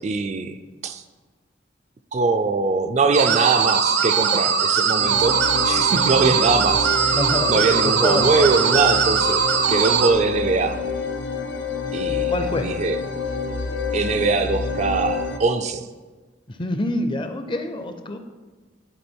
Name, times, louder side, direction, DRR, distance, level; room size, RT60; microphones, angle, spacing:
voice 1, 0.0-0.6 0.8-1.0 2.1-7.1 7.5-10.8 11.9-12.3 12.6-13.0 13.9-15.9, right 4 dB, 40° right, 9 dB, 0.3 m, -22 dB
sound 1, 3.1-10.1, right 6 dB, 75° right, 0.7 m, -20 dB
sound 2, 5.0-15.4, left 5 dB, 75° left, 0.6 m, -28 dB
voice 2, 7.1-7.5 7.8-8.5 12.3-12.7 16.5-18.2, left 1 dB, 25° left, 7 dB, 0.5 m, -26 dB
10.5 x 3.7 x 4.5 m, 1.3 s
head